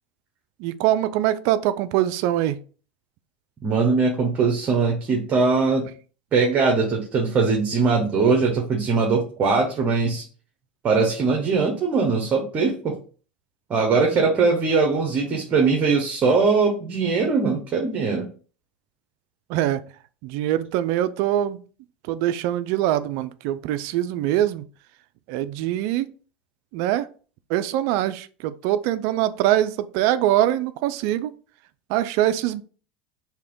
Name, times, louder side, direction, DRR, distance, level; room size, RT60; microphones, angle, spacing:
voice 1, 0.6-2.6 19.5-19.8 20.2-21.6 22.1-24.7 25.3-26.1 26.7-27.1 27.5-31.3 31.9-32.6, right 13 dB, 60° right, 0.4 m, -23 dB
voice 2, 3.6-5.9 6.3-10.2 10.8-13.0 13.7-18.3, right 4 dB, 35° right, 1.0 m, -21 dB
3.3 x 2.8 x 3.7 m
hypercardioid pair, 90°, 5 cm